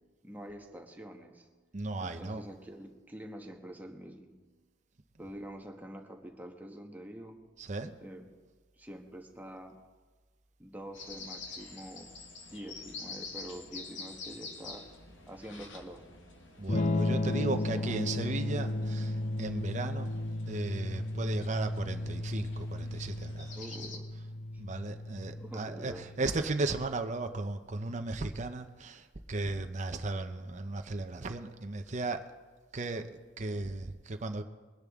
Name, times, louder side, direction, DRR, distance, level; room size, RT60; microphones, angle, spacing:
voice 1, 0.2-1.5 2.0-4.3 5.2-7.4 8.0-8.3 8.8-9.8 10.6-12.1 12.5-14.8 15.3-16.1 17.5-18.1 23.5-24.1 25.4-26.1, right 1 dB, 10° right, 2 dB, 1.3 m, -46 dB
voice 2, 1.7-2.4 7.6-7.9 16.6-20.1 20.5-23.6 24.6-32.2 32.7-33.0 33.4-34.4, right 2 dB, 40° right, 6 dB, 0.7 m, -35 dB
sound 1, 10.9-24.0, left 4 dB, 90° left, 1.5 m, -48 dB
Electric guitar / Strum, 16.7-26.4, left 1 dB, 35° left, 0.5 m, -34 dB
22.0 x 10.5 x 3.6 m, 1.4 s
head